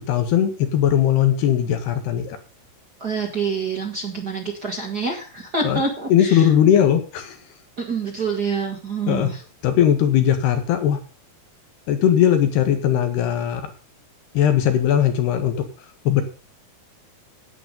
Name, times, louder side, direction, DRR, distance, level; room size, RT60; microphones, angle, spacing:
voice 1, 0.0-2.4 5.6-5.8 6.1-7.4 9.1-9.3 9.6-11.0 11.9-13.7 14.4-15.6 16.1-16.2, left 10 dB, 85° left, 7 dB, 3.8 m, -19 dB
voice 2, 3.0-6.5 7.8-9.4, right 4 dB, 35° right, 0 dB, 1.7 m, -27 dB
10.5 x 9.4 x 5.3 m, 0.36 s
omnidirectional pair, 4.6 m